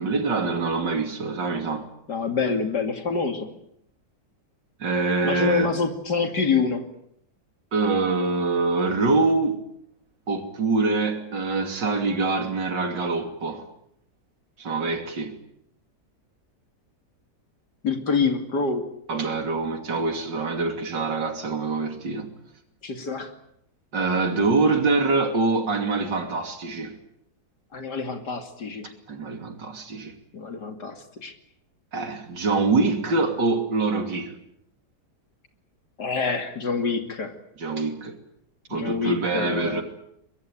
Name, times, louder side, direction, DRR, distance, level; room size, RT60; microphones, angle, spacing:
voice 1, 0.0-1.9 4.8-5.7 7.7-9.6 10.3-13.7 14.6-15.3 19.1-22.3 23.9-27.0 29.1-30.2 31.9-34.4 37.6-38.2 38.7-39.8, right 3 dB, 85° right, 3.5 m, -25 dB
voice 2, 2.1-3.5 5.2-6.8 17.8-18.9 22.8-23.3 27.7-28.9 30.3-31.3 36.0-37.3 38.7-39.8, left 5 dB, 70° left, 3.2 m, -26 dB
23.0 x 21.5 x 9.1 m
omnidirectional pair, 1.9 m